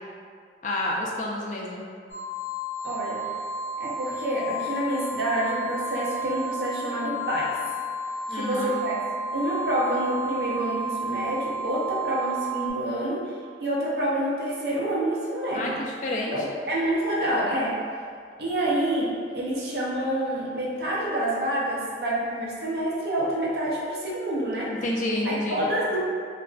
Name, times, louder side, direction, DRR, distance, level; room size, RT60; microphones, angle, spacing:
voice 1, 0.6-1.8 8.3-8.7 15.5-16.3 24.8-25.6, left 1 dB, 40° left, -2 dB, 0.3 m, -29 dB
sound 1, 2.1-12.7, right 2 dB, 80° left, 0.6 m, -32 dB
voice 2, 2.8-3.2 3.8-7.5 8.3-9.0 9.3-13.2 13.6-15.8 16.3-17.8 18.4-24.7 25.2-26.1, right 1 dB, 60° right, -5 dB, 0.5 m, -27 dB
2.4 x 2.2 x 2.3 m, 2.1 s
head